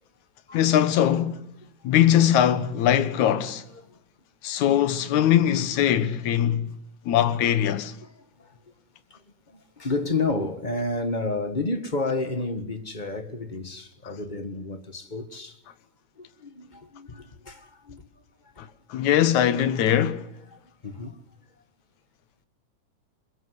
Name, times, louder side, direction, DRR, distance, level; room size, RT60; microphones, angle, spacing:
voice 1, 0.5-1.4 1.8-3.6 4.4-6.7 7.1-8.0 18.6-20.3, left 10 dB, 70° left, 2.6 m, -21 dB
voice 2, 8.0-8.5 9.5-15.6 16.2-18.1 18.6-18.7 20.5-21.2, left 3 dB, 35° left, 0.7 m, -31 dB
28.5 x 22.0 x 8.1 m
omnidirectional pair, 3.7 m